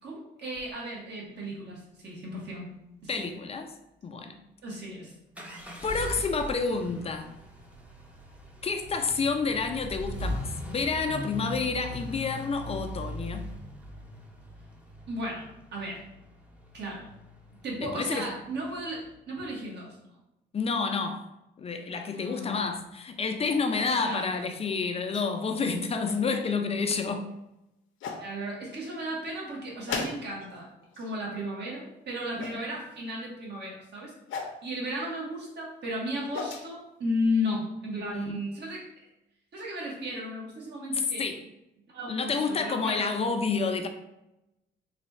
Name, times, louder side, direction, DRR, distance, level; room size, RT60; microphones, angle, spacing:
voice 1, 0.0-2.6 3.0-3.3 4.6-5.1 15.1-16.0 16.7-17.0 17.6-19.9 22.1-22.7 24.0-24.5 28.2-30.7 31.0-34.1 34.6-38.8 39.5-41.2 41.9-43.1, left 1 dB, 60° right, 1.4 m, -34 dB
sound 1, 0.6-0.7 5.4-19.2, equal, 5° right, 0.7 m, -40 dB
voice 2, 3.1-3.7 4.0-4.3 5.8-7.4 8.6-13.4 17.9-18.3 20.5-21.3 21.6-27.3 38.1-38.4 41.2-41.4 42.1-43.9, left 4 dB, 30° left, 0.5 m, -29 dB
sound 2, 23.7-24.3 25.1-25.3 25.8-26.2 27.3-27.4 28.0-28.3 29.9-30.5 30.8-31.2 32.4-32.6 34.3-34.6 36.0-36.7, left 5 dB, 75° left, 0.6 m, -37 dB
3.2 x 2.3 x 4.1 m
cardioid pair, 90°, 20 cm